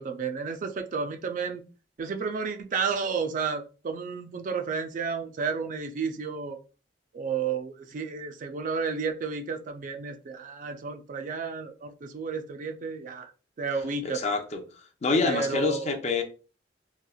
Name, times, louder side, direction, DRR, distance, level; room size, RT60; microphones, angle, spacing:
voice 1, 0.0-1.6 2.0-6.6 7.1-13.3 13.6-14.2 15.2-15.9, right 5 dB, 45° right, 0.3 m, -32 dB
voice 2, 14.0-14.6 15.0-16.2, left 4 dB, 40° left, 0.5 m, -26 dB
3.0 x 2.8 x 2.3 m
head